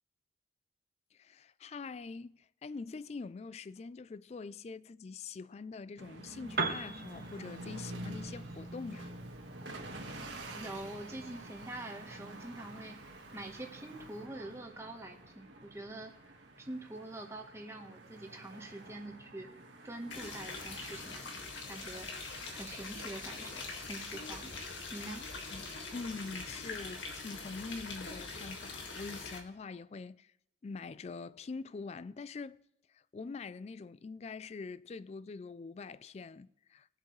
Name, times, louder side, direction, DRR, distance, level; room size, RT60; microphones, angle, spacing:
voice 1, 1.1-9.1 25.5-25.6 25.9-30.3 30.6-32.6 32.9-36.9, left 4 dB, 35° left, 0.3 m, -44 dB
sound 1, 6.0-24.6, right 1 dB, 80° right, 1.6 m, -49 dB
Piano, 6.4-14.3, right 4 dB, 50° right, 1.0 m, -44 dB
voice 2, 10.5-16.1 16.6-19.5 19.8-21.4 21.7-22.1 22.5-24.5 24.9-25.2, right 1 dB, 15° right, 1.2 m, -45 dB
sound 2, 20.1-29.4, left 3 dB, 85° left, 1.9 m, -43 dB
21.0 x 7.4 x 3.2 m
head